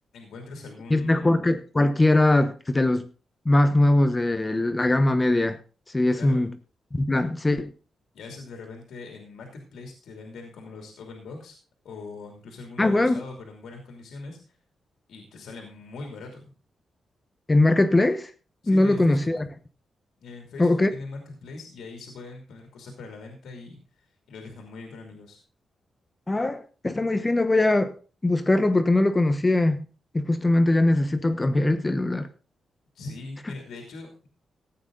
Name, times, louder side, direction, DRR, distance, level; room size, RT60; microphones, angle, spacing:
voice 1, 0.1-1.4 6.1-6.5 8.1-11.6 11.8-14.6 15.1-16.5 18.6-19.3 20.2-25.4 32.9-34.3, left 3 dB, 90° left, 3 dB, 2.8 m, -41 dB
voice 2, 0.9-3.1 3.4-5.6 5.9-6.5 6.9-7.7 12.8-13.2 17.5-18.3 18.7-19.4 20.6-20.9 26.3-27.9 28.2-29.8 30.1-32.3, left 2 dB, 20° left, 10 dB, 1.0 m, -21 dB
14.5 x 9.1 x 3.9 m, 0.35 s
cardioid pair, 105°, 0 cm